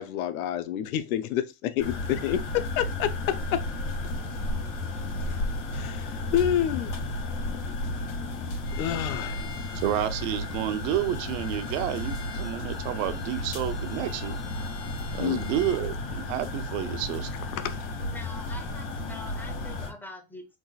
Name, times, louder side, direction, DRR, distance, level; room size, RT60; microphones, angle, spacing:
voice 1, 0.0-3.6 5.7-6.9 8.8-9.5 15.2-15.5 17.5-17.9, left 11 dB, 90° left, 0.8 m, -28 dB
sound 1, 1.8-19.9, left 2 dB, 70° left, 2.4 m, -33 dB
Bowed string instrument, 8.6-15.9, left 6 dB, 25° left, 1.6 m, -47 dB
voice 2, 9.7-14.4 15.1-17.3, right 12 dB, 65° right, 0.8 m, -30 dB
voice 3, 17.9-20.6, left 1 dB, 5° left, 0.8 m, -44 dB
4.0 x 3.7 x 2.4 m
supercardioid pair, 130°, 41 cm